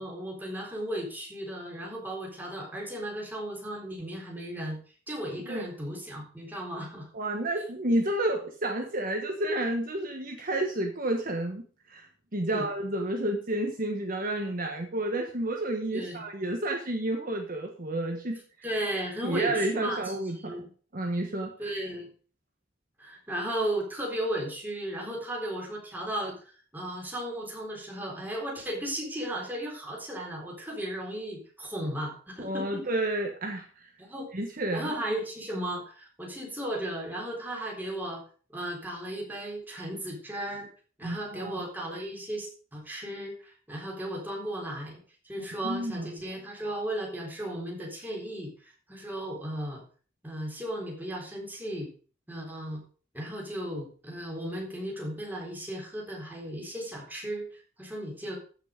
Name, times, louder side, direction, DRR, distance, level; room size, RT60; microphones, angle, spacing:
voice 1, 0.0-4.8 5.1-7.1 12.5-12.6 15.9-16.2 18.6-20.7 21.6-22.1 23.0-32.8 34.0-34.3 34.7-38.2 38.5-40.7 41.0-45.0 45.2-49.8 50.2-51.9 52.3-52.8 53.1-58.4, right 1 dB, 10° right, -1 dB, 3.7 m, -35 dB
voice 2, 7.1-18.4 19.2-20.5 20.9-21.5 32.4-33.9 34.3-34.9 41.0-41.6 45.6-46.1, right 1 dB, 45° right, 3 dB, 1.4 m, -30 dB
15.0 x 6.0 x 5.1 m, 0.41 s
head